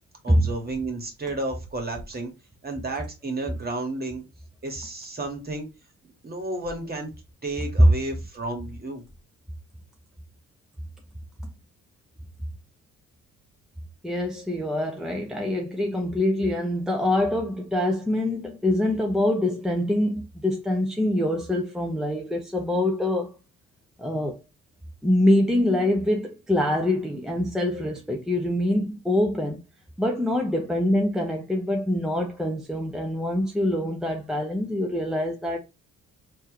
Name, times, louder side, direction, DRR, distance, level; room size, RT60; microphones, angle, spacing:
voice 1, 0.2-2.3 2.6-4.2 4.6-5.7 6.2-7.1 7.4-9.0, right 2 dB, 30° right, 1.7 m, -32 dB
voice 2, 14.0-23.3 24.0-24.4 25.0-29.6 30.0-35.6, left 1 dB, ahead, 0.8 m, -25 dB
4.6 x 2.9 x 3.0 m
cardioid pair, 90°, 30 cm